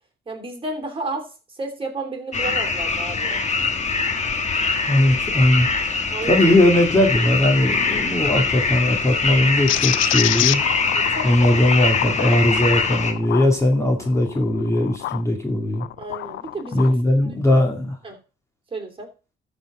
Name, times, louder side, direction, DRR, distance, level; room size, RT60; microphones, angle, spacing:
voice 1, 0.3-3.4 6.1-6.4 10.9-11.5 16.0-17.0 17.2-17.6 18.0-18.2 18.7-19.1, right 3 dB, 25° right, 3 dB, 3.1 m, -32 dB
sound 1, 2.3-13.1, left 4 dB, 35° left, 1.5 m, -23 dB
voice 2, 4.9-5.7 6.3-10.6 11.2-15.9 16.7-18.0, left 1 dB, 15° left, 2 dB, 2.3 m, -19 dB
sound 2, 9.7-15.2 15.7-16.9, left 14 dB, 75° left, 0.5 m, -27 dB
13.5 x 4.5 x 4.9 m, 0.34 s
cardioid pair, 90°, 20 cm